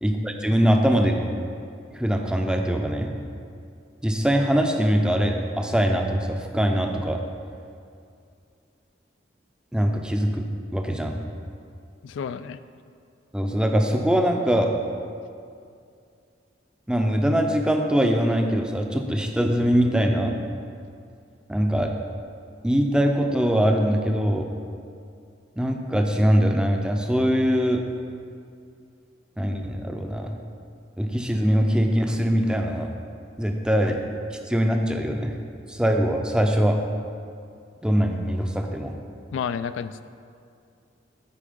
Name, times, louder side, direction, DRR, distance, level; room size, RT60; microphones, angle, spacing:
voice 1, 0.0-1.3 1.9-3.1 4.0-7.2 9.7-10.5 10.7-11.2 13.3-14.7 16.9-20.4 21.5-21.9 22.6-24.5 25.6-27.8 29.4-30.4 31.0-32.9 33.4-34.0 34.5-35.4 35.7-36.8 37.8-38.9, equal, 5° right, 3 dB, 0.5 m, -22 dB
voice 2, 12.0-12.6 39.3-40.0, left 7 dB, 85° left, 13 dB, 0.3 m, -30 dB
8.5 x 4.7 x 5.2 m, 2.4 s
head